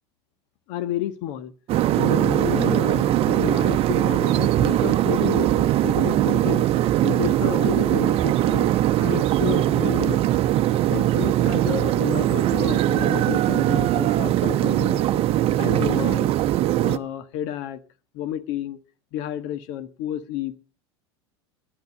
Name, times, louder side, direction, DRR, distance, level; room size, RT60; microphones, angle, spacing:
voice 1, 0.7-1.5 1.9-6.7 7.0-8.7 9.0-10.2 10.9-15.2 15.6-16.3 16.8-17.8 18.1-18.8 19.1-20.5, left 12 dB, 60° left, 12 dB, 1.4 m, -31 dB
sound 1, 1.7-17.0, right 13 dB, 45° right, 0.8 m, -21 dB
10.5 x 10.5 x 6.5 m, 0.36 s
hypercardioid pair, 85°, 14 cm